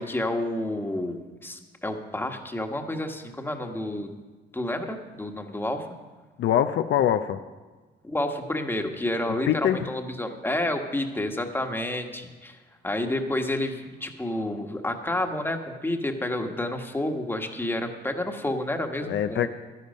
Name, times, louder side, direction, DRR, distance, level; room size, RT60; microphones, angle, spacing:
voice 1, 0.0-4.1 4.5-5.9 8.0-12.6 12.8-19.5, left 1 dB, 10° left, 5 dB, 1.3 m, -30 dB
voice 2, 6.4-7.4 9.3-9.9 19.0-19.5, left 10 dB, 70° left, 9 dB, 0.5 m, -24 dB
11.5 x 10.5 x 5.3 m, 1.3 s
cardioid pair, 90°, 20 cm